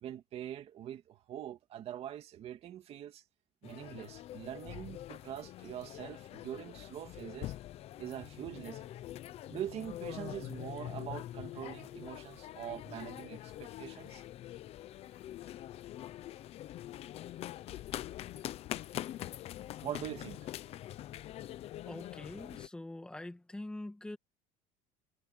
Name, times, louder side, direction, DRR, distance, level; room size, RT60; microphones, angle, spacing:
voice 1, 0.0-3.2 3.6-7.5 8.0-8.9 9.5-14.2 19.8-20.5, right 11 dB, 35° right, 2.4 m, -43 dB
sound 1, 3.6-22.7, left 13 dB, 35° left, 0.7 m, -44 dB
voice 2, 21.8-24.2, left 1 dB, 5° left, 1.9 m, -44 dB
cardioid pair, 170°, 17 cm